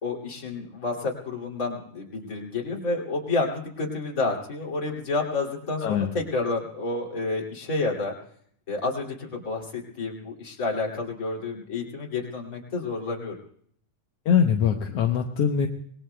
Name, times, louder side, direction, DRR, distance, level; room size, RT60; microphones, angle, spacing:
voice 1, 0.0-8.2 8.7-13.4, left 3 dB, 25° left, -2 dB, 2.7 m, -30 dB
voice 2, 5.8-6.1 14.3-15.7, left 7 dB, 70° left, 3 dB, 1.5 m, -22 dB
26.0 x 21.0 x 2.2 m, 0.65 s
omnidirectional pair, 3.7 m